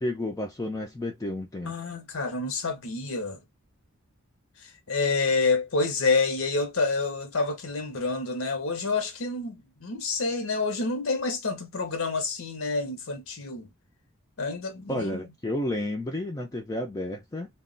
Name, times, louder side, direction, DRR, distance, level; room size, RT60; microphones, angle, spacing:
voice 1, 0.0-1.7 14.9-17.5, left 1 dB, 15° left, 0.3 m, -31 dB
voice 2, 1.7-3.4 4.9-13.7 14.4-15.3, left 3 dB, 70° left, 0.7 m, -28 dB
2.3 x 2.1 x 3.7 m
head